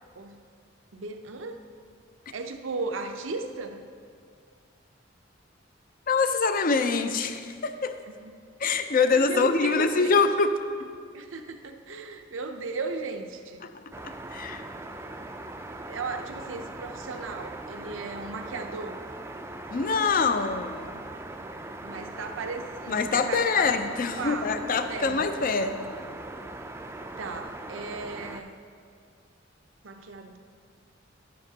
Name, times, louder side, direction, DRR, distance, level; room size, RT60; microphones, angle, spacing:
voice 1, 0.9-1.6 2.3-3.8 8.1-8.3 9.1-10.2 11.1-13.6 15.2-15.3 15.9-19.0 21.8-23.7 24.2-25.5 27.0-28.6 29.8-30.4, right 3 dB, 85° right, 6 dB, 0.6 m, -36 dB
voice 2, 6.1-7.9 8.6-10.5 13.6-13.7 14.0-14.6 19.7-21.0 22.9-25.8, left 4 dB, 45° left, 9 dB, 0.5 m, -25 dB
sound 1, 13.9-28.4, right 2 dB, 15° right, 0.4 m, -40 dB
12.0 x 10.0 x 2.8 m, 2.1 s
head